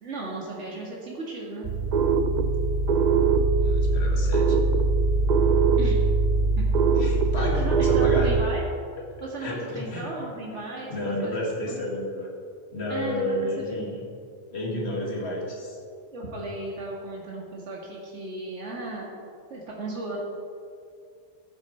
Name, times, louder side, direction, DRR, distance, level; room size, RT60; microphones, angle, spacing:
voice 1, 0.0-1.7 5.8-6.1 6.6-6.8 7.4-8.6 9.2-11.3 11.6-11.8 12.9-13.3 13.6-13.8 16.1-19.2 19.5-20.2, right 2 dB, 85° right, -3 dB, 2.1 m, -35 dB
sound 1, 1.6-8.4, right 4 dB, 50° right, 0.6 m, -21 dB
voice 2, 3.5-4.6 7.0-8.3 9.4-10.2 10.8-12.3 12.7-14.0 14.5-15.8, left 1 dB, 65° left, -2 dB, 2.2 m, -31 dB
14.5 x 7.3 x 4.5 m, 2.3 s
omnidirectional pair, 1.2 m